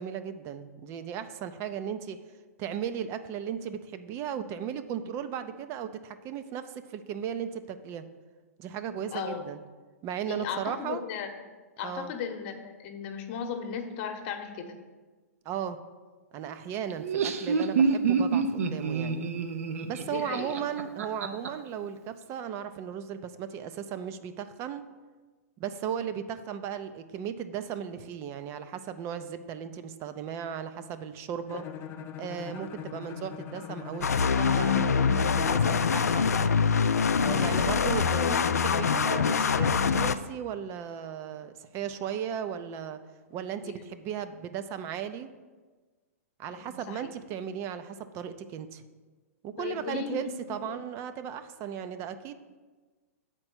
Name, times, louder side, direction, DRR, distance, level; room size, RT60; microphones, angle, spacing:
voice 1, 0.0-2.2 2.6-8.0 8.6-9.6 10.0-11.0 11.8-12.1 15.4-15.8 16.3-19.3 19.8-24.8 25.6-31.6 32.2-36.2 37.1-43.0 43.3-45.3 46.4-48.8 49.4-52.3, right 8 dB, 30° right, 10 dB, 0.5 m, -36 dB
voice 2, 9.1-9.5 10.3-11.3 11.8-14.8 20.0-20.6 43.6-43.8 46.5-47.1 49.6-50.2 50.6-50.8, left 7 dB, 45° left, 6 dB, 1.0 m, -36 dB
Laughter, 16.9-21.5, right 5 dB, 65° right, 0.7 m, -27 dB
Bowed string instrument, 31.5-35.7, left 7 dB, 25° left, 0.5 m, -41 dB
sound 1, 34.0-40.1, left 6 dB, 85° left, 0.4 m, -24 dB
7.7 x 4.5 x 6.1 m, 1.3 s
hypercardioid pair, 120°, 8 cm